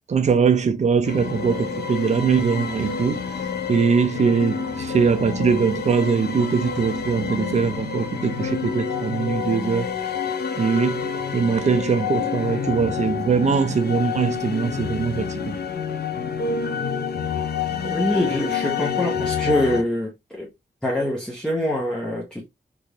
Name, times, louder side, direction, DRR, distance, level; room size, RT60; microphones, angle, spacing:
voice 1, 0.1-3.2 3.7-9.9 10.6-15.6, right 5 dB, 40° right, 0.5 m, -21 dB
sound 1, 1.1-19.8, left 6 dB, 70° left, 0.6 m, -28 dB
voice 2, 17.9-20.5 20.8-22.4, left 1 dB, 5° left, 0.7 m, -24 dB
3.4 x 2.5 x 2.8 m
wide cardioid pair, 165°, 17 cm